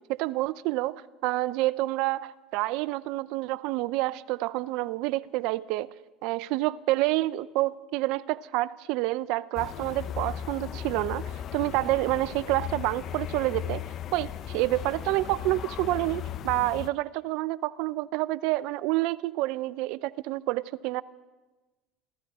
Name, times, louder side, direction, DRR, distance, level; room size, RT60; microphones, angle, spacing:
voice 1, 0.1-5.9 6.2-11.2 11.5-13.8 14.1-21.0, right 18 dB, 70° right, 0.4 m, -28 dB
sound 1, 9.5-16.9, left 10 dB, 55° left, 0.6 m, -37 dB
26.5 x 14.0 x 3.6 m
supercardioid pair, 85°, 0 cm